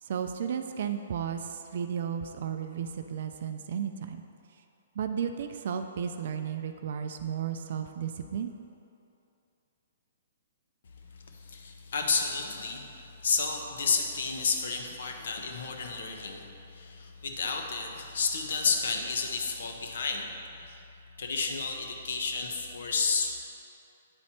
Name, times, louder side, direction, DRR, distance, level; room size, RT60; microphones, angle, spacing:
voice 1, 0.0-4.2 5.0-8.5, right 8 dB, 60° right, 7 dB, 0.3 m, -33 dB
voice 2, 11.1-20.3 20.6-20.8 21.2-23.3, left 4 dB, 70° left, 3 dB, 0.9 m, -31 dB
8.8 x 4.3 x 4.3 m, 2.7 s
hypercardioid pair, 135°, 0 cm